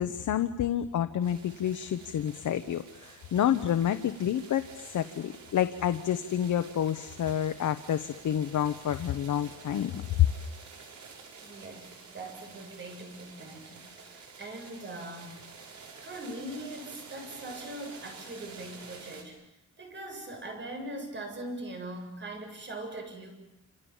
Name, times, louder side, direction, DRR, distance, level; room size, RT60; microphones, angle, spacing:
voice 1, 0.0-4.6 4.9-10.3, left 10 dB, 80° left, 8 dB, 1.2 m, -28 dB
sound 1, 1.2-19.2, right 5 dB, 70° right, 6.5 m, -49 dB
voice 2, 11.4-15.4 16.0-19.4 19.8-23.3, right 1 dB, 40° right, 4 dB, 7.4 m, -41 dB
29.0 x 28.0 x 7.4 m, 0.83 s
wide cardioid pair, 140°, 30 cm